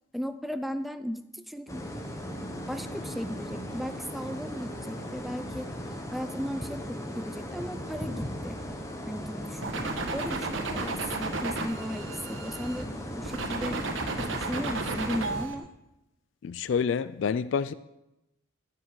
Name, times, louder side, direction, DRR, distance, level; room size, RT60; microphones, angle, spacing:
voice 1, 0.1-1.8 2.4-5.7 6.1-8.6 9.1-13.8 14.2-15.7, equal, ahead, 0.4 m, -36 dB
sound 1, 1.7-15.5, equal, 15° left, 1.0 m, -38 dB
sound 2, 9.6-12.8 13.2-15.5, right 3 dB, 80° right, 1.3 m, -33 dB
voice 2, 16.4-17.7, left 6 dB, 70° left, 0.3 m, -28 dB
14.0 x 7.5 x 4.6 m
head